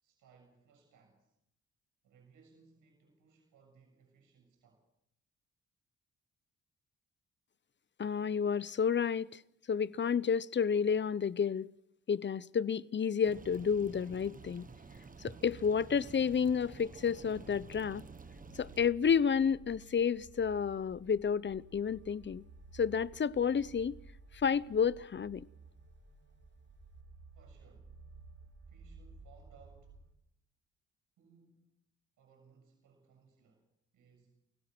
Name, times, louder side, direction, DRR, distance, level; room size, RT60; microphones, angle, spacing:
voice 1, 0.0-1.3 2.0-4.9 27.3-28.0 28.7-30.0 31.2-31.8 32.2-33.7 33.9-34.4, right 5 dB, 90° right, 7.1 m, -64 dB
voice 2, 8.0-9.4 9.7-11.7 12.1-14.7 15.2-18.0 18.5-22.4 22.7-24.0 24.3-25.5, left 7 dB, 40° left, 0.8 m, -31 dB
sound 1, 13.2-18.8, right 4 dB, 25° right, 1.4 m, -51 dB
sound 2, 14.5-30.1, right 4 dB, 50° right, 7.4 m, -55 dB
30.0 x 16.5 x 6.2 m
cardioid pair, 90°, 30 cm